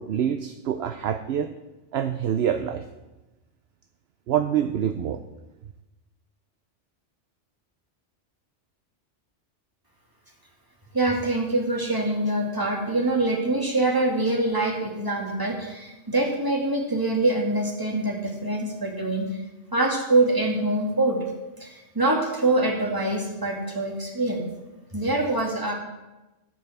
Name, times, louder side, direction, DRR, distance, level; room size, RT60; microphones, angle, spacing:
voice 1, 0.0-1.5 1.9-2.9 4.3-5.2, right 9 dB, 65° right, 9 dB, 0.8 m, -26 dB
voice 2, 10.9-19.2 19.7-21.2 21.6-24.5 24.9-25.7, right 2 dB, 15° right, 0 dB, 2.2 m, -24 dB
14.5 x 5.5 x 7.8 m, 1.1 s
omnidirectional pair, 1.2 m